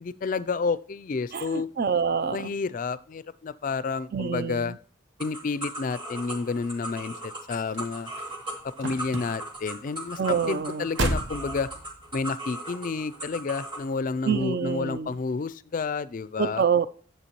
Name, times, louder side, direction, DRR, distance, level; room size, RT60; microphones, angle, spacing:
voice 1, 0.0-1.7 2.3-4.7 5.2-8.1 8.8-11.7 12.1-16.6, left 4 dB, 40° left, 0.3 m, -30 dB
voice 2, 1.3-2.5 4.1-4.8 10.2-10.9 14.3-15.1 16.4-16.9, right 6 dB, 50° right, 0.4 m, -26 dB
sound 1, 5.2-13.9, right 1 dB, 25° right, 1.7 m, -38 dB
sound 2, 7.5-12.3 13.0-13.4 13.7-13.8, right 1 dB, 70° right, 0.9 m, -33 dB
9.8 x 7.4 x 3.0 m
head